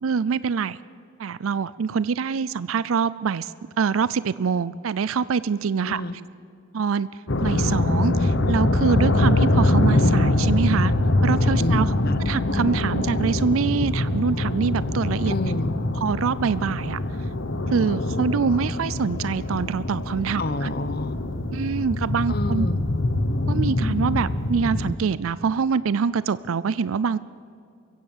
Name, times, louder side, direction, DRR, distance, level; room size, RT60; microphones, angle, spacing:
voice 1, 0.0-0.8 1.2-6.0 6.7-7.1 7.4-10.9 11.2-11.9 12.3-15.3 16.0-17.0 17.7-20.7 21.5-22.7 23.5-27.2, right 6 dB, 80° right, 18 dB, 0.4 m, -25 dB
voice 2, 5.8-6.1 11.6-12.2 15.3-15.7 20.4-21.2 22.3-22.8, left 2 dB, 50° left, 13 dB, 0.9 m, -29 dB
sound 1, 7.3-25.0, left 1 dB, 65° left, 1.3 m, -23 dB
24.0 x 16.0 x 7.3 m, 2.4 s
head